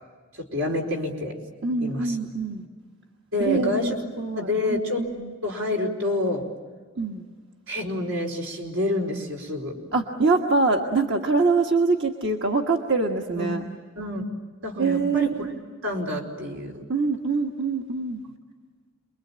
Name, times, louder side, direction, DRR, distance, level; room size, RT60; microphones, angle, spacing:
voice 1, 0.3-1.4 1.8-2.2 3.3-3.9 4.3-5.0 5.4-6.5 7.7-9.8 13.3-13.6 14.0-14.2 14.6-15.3 15.8-16.8, left 1 dB, 80° right, 1 dB, 4.6 m, -28 dB
voice 2, 1.6-2.6 3.4-5.3 7.0-7.2 9.9-13.6 14.8-15.6 16.9-18.2, right 3 dB, 55° right, 1 dB, 1.5 m, -24 dB
28.5 x 22.5 x 8.8 m, 1.5 s
head